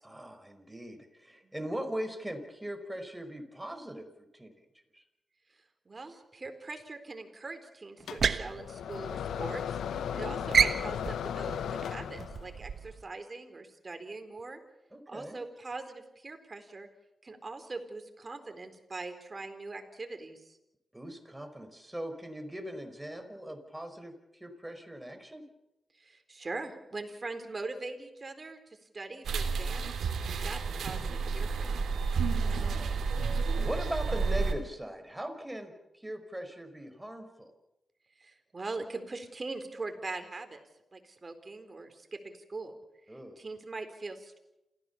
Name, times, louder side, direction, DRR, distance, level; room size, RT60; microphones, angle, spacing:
voice 1, 0.0-4.1 4.3-4.6 4.9-5.0 9.9-10.4 14.9-15.4 20.9-25.4 32.4-37.5 43.1-43.4, equal, 10° right, 6 dB, 5.2 m, -40 dB
voice 2, 5.5-9.8 10.1-14.6 15.1-16.9 17.2-20.6 25.9-29.9 30.4-32.0 38.2-40.6 40.9-42.8 43.1-44.4, right 3 dB, 40° right, 7 dB, 4.2 m, -42 dB
sound 1, 8.0-9.6 9.9-10.2 10.5-13.0, right 6 dB, 65° right, 1.2 m, -30 dB
sound 2, 8.1-12.6, left 8 dB, 90° left, 0.9 m, -36 dB
sound 3, 29.2-34.5, right 4 dB, 80° right, 2.6 m, -30 dB
28.0 x 16.0 x 7.2 m, 0.91 s
cardioid pair, 55°, 0 cm